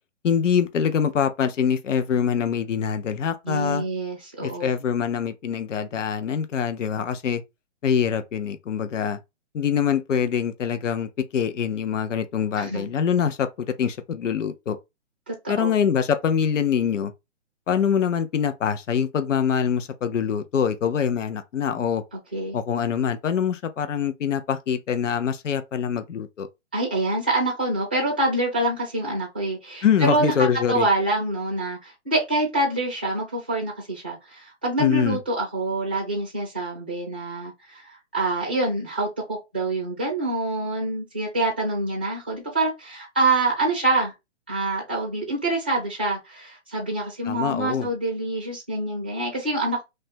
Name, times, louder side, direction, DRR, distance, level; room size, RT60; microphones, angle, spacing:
voice 1, 0.2-3.8 4.4-7.4 7.8-9.2 9.5-14.8 15.5-17.1 17.7-22.0 22.5-26.5 29.8-30.9 34.8-35.2 47.3-47.9, left 7 dB, 85° left, 0.8 m, -24 dB
voice 2, 3.4-4.7 12.6-12.9 15.3-15.7 22.3-22.6 26.7-44.1 44.5-49.8, right 2 dB, 10° right, 0.5 m, -26 dB
3.3 x 2.6 x 4.3 m
hypercardioid pair, 175°, 36 cm